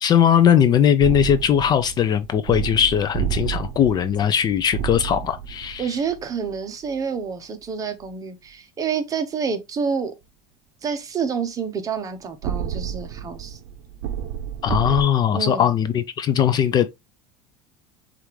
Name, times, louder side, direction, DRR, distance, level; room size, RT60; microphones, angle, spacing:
voice 1, 0.0-5.9 14.6-16.9, left 9 dB, 30° left, 0.4 m, -19 dB
sound 1, 1.0-6.6 12.4-15.0, right 9 dB, 70° right, 0.6 m, -30 dB
voice 2, 5.8-10.1 10.8-13.6 15.3-15.7, right 6 dB, 25° right, 0.8 m, -28 dB
6.4 x 2.5 x 3.1 m
supercardioid pair, 135°, 13 cm